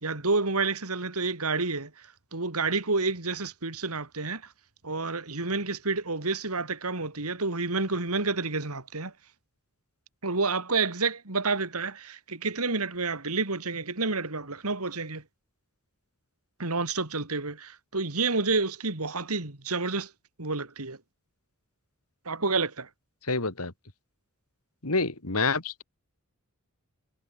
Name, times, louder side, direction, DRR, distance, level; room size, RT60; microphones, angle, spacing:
voice 1, 0.0-1.9 2.3-4.4 4.8-9.1 10.2-15.2 16.6-20.1 20.4-21.0 22.3-22.9, right 3 dB, 80° right, 3.0 m, -29 dB
voice 2, 23.3-23.7 24.8-25.8, left 3 dB, 80° left, 3.1 m, -27 dB
head